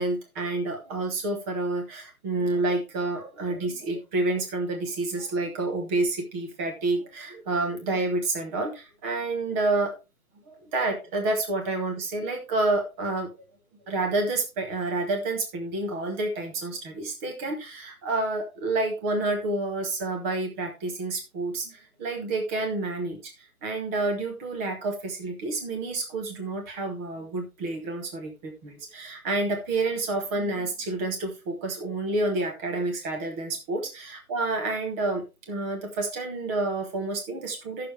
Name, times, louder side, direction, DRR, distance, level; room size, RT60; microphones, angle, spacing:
voice 1, 0.0-9.9 10.5-13.3 13.9-23.3 23.6-37.9, right 2 dB, 10° right, 3 dB, 1.1 m, -29 dB
14.0 x 6.7 x 3.3 m, 0.26 s
figure-of-eight pair, 150°, 43 cm